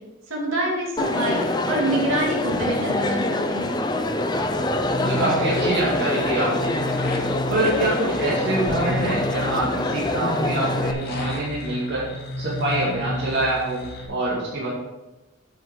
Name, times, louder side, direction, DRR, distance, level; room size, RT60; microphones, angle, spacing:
voice 1, 0.3-3.2 3.5-3.7, right 1 dB, 75° right, -3 dB, 2.7 m, -25 dB
Crowd, 1.0-10.9, left 2 dB, 20° left, 0.6 m, -25 dB
sound 1, 4.5-14.1, left 1 dB, 50° left, 1.9 m, -32 dB
voice 2, 5.0-6.7 7.5-12.1 12.4-13.8 14.1-14.7, right 1 dB, 55° right, -6 dB, 2.1 m, -25 dB
7.9 x 7.3 x 4.7 m, 1.0 s
head